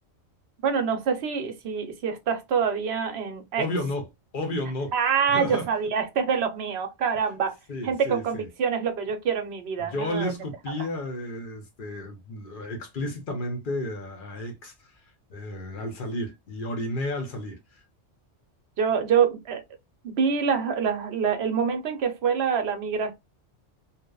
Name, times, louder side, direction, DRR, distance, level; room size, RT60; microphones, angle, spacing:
voice 1, 0.6-3.6 4.9-7.5 7.8-10.3 18.8-19.6 20.0-23.1, right 6 dB, 65° right, 0.9 m, -26 dB
voice 2, 3.6-4.1 4.3-4.9 5.3-5.7 7.7-8.5 9.8-14.9 15.3-17.8, left 1 dB, 50° left, 0.8 m, -32 dB
2.8 x 2.0 x 2.2 m
omnidirectional pair, 1.2 m